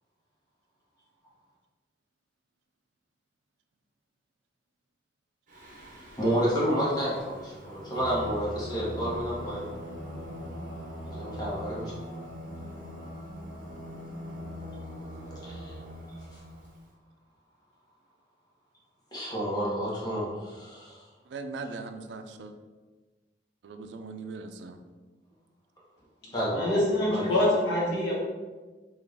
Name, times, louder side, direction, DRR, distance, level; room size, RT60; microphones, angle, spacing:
Singing, 5.5-16.8, equal, 50° right, 0.8 m, -41 dB
voice 1, 6.2-9.8 11.1-11.9 15.4-15.7 16.3-16.4 19.1-21.0 26.3-26.7 27.1-27.3, equal, 25° left, -6 dB, 1.1 m, -30 dB
voice 2, 21.3-22.5 23.6-24.8, right 3 dB, 75° right, 7 dB, 0.4 m, -40 dB
voice 3, 26.5-28.1, left 1 dB, 90° left, -4 dB, 1.1 m, -25 dB
3.9 x 2.4 x 3.4 m, 1.3 s
head